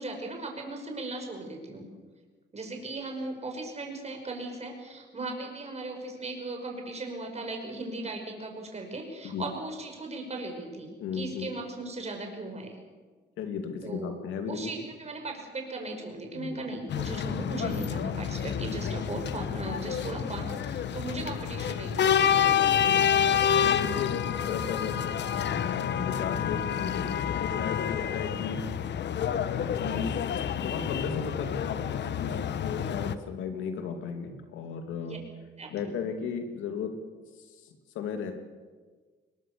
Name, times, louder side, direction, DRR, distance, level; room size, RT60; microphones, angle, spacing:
voice 1, 0.0-1.9 2.5-12.8 13.8-14.2 14.5-23.1 35.0-35.2 35.6-36.0, right 2 dB, 35° right, 3 dB, 5.5 m, -37 dB
voice 2, 11.0-11.5 13.4-14.7 16.3-16.6 22.8-23.4 23.6-25.0 25.6-28.6 29.7-30.2 30.6-35.2 35.7-36.9 37.9-38.3, left 6 dB, 90° left, 6 dB, 2.7 m, -35 dB
sound 1, 16.9-33.2, left 8 dB, 60° left, 1.1 m, -28 dB
21.5 x 21.0 x 6.9 m, 1.4 s
cardioid pair, 90°, 20 cm